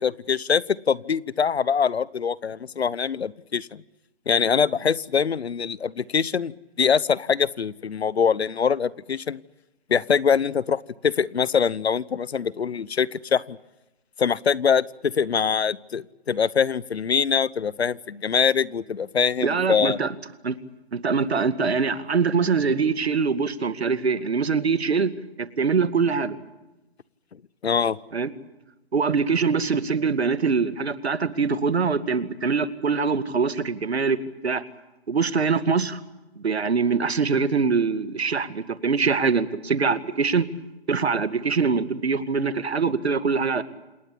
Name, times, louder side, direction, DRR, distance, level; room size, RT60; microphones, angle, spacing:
voice 1, 0.0-3.8 4.3-6.5 6.8-9.4 9.9-13.6 14.2-20.0 27.6-28.0, left 6 dB, 75° left, 22 dB, 1.0 m, -23 dB
voice 2, 19.4-20.1 20.4-20.6 20.9-25.1 25.4-26.4 28.1-28.3 28.9-34.2 34.4-34.6 35.1-36.0 36.4-40.5 40.9-43.6, right 5 dB, 75° right, 12 dB, 2.2 m, -23 dB
28.0 x 20.0 x 8.5 m, 1.0 s
hypercardioid pair, 155°, 32 cm